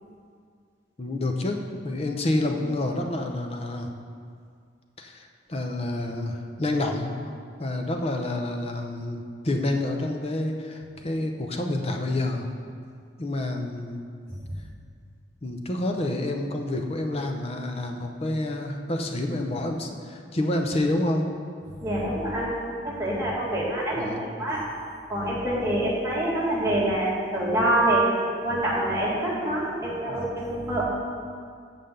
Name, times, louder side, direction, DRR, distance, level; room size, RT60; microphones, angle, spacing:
voice 1, 1.0-3.9 5.0-7.1 7.6-12.5 13.2-14.0 15.4-21.3 24.0-24.3 29.8-30.2, left 1 dB, 35° left, 3 dB, 0.7 m, -28 dB
voice 2, 21.8-22.5 22.8-24.7 25.1-28.1 28.4-30.8, right 1 dB, 15° right, -6 dB, 1.8 m, -26 dB
6.9 x 5.8 x 6.6 m, 2.2 s
head